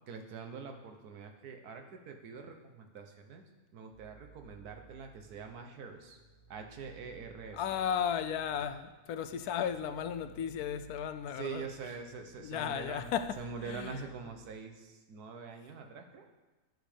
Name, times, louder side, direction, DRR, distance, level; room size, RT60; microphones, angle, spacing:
voice 1, 0.1-3.5 3.7-6.2 6.5-7.6 11.3-16.3, right 5 dB, 90° right, 1.5 m, -44 dB
sound 1, 3.9-14.5, right 4 dB, 45° right, 2.6 m, -59 dB
voice 2, 7.5-11.7 12.4-14.0, left 8 dB, 80° left, 1.1 m, -35 dB
10.5 x 6.5 x 5.0 m
omnidirectional pair, 1.6 m